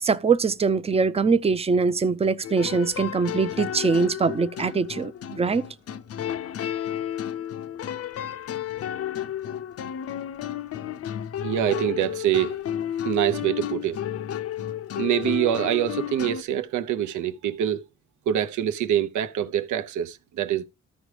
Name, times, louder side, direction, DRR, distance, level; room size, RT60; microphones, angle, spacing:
voice 1, 0.0-5.6, right 4 dB, 20° right, 0.5 m, -23 dB
sound 1, 2.4-16.4, left 10 dB, 50° left, 0.6 m, -32 dB
voice 2, 11.4-12.6 13.0-14.0 15.0-17.8 18.3-20.6, right 10 dB, 75° right, 0.8 m, -25 dB
13.5 x 5.1 x 3.2 m
cardioid pair, 90°, 30 cm